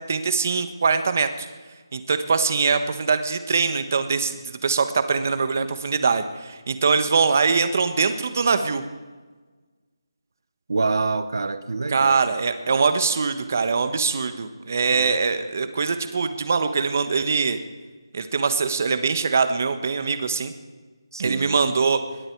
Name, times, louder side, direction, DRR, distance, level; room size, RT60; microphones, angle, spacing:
voice 1, 0.1-1.5 1.9-8.8 11.9-17.6 18.1-20.5 21.2-22.0, right 5 dB, 35° right, 10 dB, 1.3 m, -22 dB
voice 2, 10.7-12.2 14.9-15.1 15.6-15.7 21.1-21.6, right 3 dB, 55° right, 12 dB, 1.0 m, -26 dB
27.5 x 22.0 x 4.7 m, 1.4 s
figure-of-eight pair, 175°, 2 cm